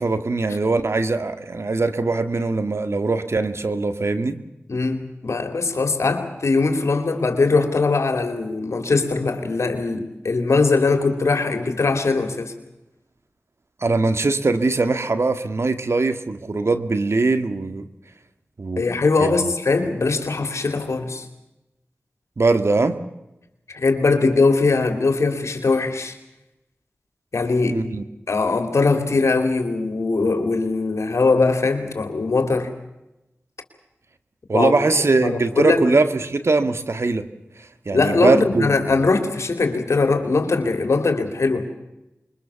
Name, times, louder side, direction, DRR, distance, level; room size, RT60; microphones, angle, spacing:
voice 1, 0.0-4.4 13.8-17.9 18.6-18.8 19.2-19.5 22.4-23.0 27.7-28.0 34.5-37.3 37.6-38.7, right 3 dB, 65° right, 10 dB, 1.9 m, -21 dB
voice 2, 4.7-12.5 18.8-21.3 23.7-26.2 27.3-27.8 28.3-32.7 34.5-34.7 35.2-35.8 37.9-41.7, left 3 dB, 80° left, 7 dB, 3.1 m, -21 dB
26.5 x 23.0 x 7.1 m, 0.94 s
cardioid pair, 40°, 5 cm